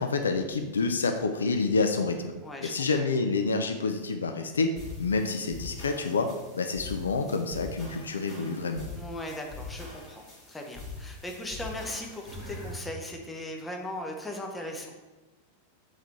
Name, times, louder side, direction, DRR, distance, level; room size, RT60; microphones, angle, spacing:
voice 1, 0.0-2.3 2.6-6.3 6.5-8.9, left 4 dB, 70° left, 6 dB, 0.3 m, -28 dB
voice 2, 2.4-2.9 9.0-14.9, left 1 dB, 10° left, 1 dB, 0.6 m, -38 dB
sound 1, 4.8-12.8, left 3 dB, 25° left, 1.4 m, -43 dB
4.0 x 3.2 x 4.0 m, 1.2 s
figure-of-eight pair, 90°, 0 cm